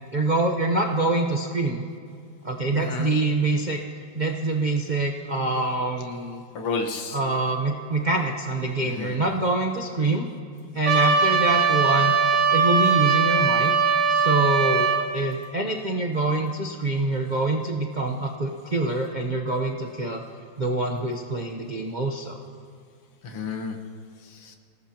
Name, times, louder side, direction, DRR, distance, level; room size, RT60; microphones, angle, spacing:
voice 1, 0.1-1.9 2.4-3.8 4.1-6.4 7.1-10.3 10.7-12.1 12.5-13.7 14.1-20.2 20.6-22.4, right 2 dB, 70° right, 1 dB, 0.4 m, -25 dB
voice 2, 2.7-3.1 6.5-7.2 8.8-9.2 23.2-23.8 24.4-24.6, left 4 dB, 80° left, 3 dB, 2.3 m, -31 dB
Trumpet, 10.9-15.0, right 5 dB, 50° right, 2.3 m, -20 dB
26.5 x 18.5 x 2.9 m, 2.3 s
omnidirectional pair, 2.4 m